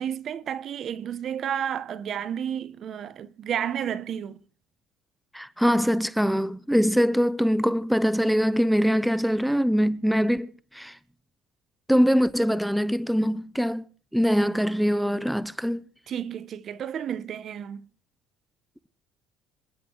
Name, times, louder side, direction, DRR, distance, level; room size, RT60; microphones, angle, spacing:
voice 1, 0.0-4.4 16.1-17.9, right 9 dB, 50° right, 1.1 m, -31 dB
voice 2, 5.3-11.0 11.9-13.8 14.1-15.8, equal, ahead, 0.7 m, -23 dB
27.0 x 10.5 x 4.7 m
cardioid pair, 110°, 0 cm